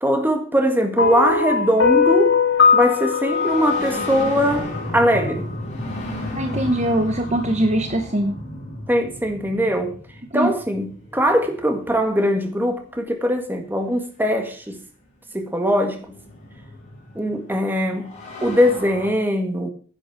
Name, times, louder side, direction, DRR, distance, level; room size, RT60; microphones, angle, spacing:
voice 1, 0.0-2.4 2.7-5.5 8.9-10.0 10.3-14.8 15.3-16.2 17.1-19.7, equal, 10° right, 1.8 m, -21 dB
sound 1, 1.0-5.3, left 6 dB, 60° left, 2.4 m, -20 dB
sound 2, 2.4-13.0 14.2-14.3 15.4-19.1, left 1 dB, 35° left, 5.6 m, -34 dB
voice 2, 6.3-8.3 10.3-10.5, right 1 dB, 35° right, 1.1 m, -22 dB
10.5 x 8.7 x 6.1 m
head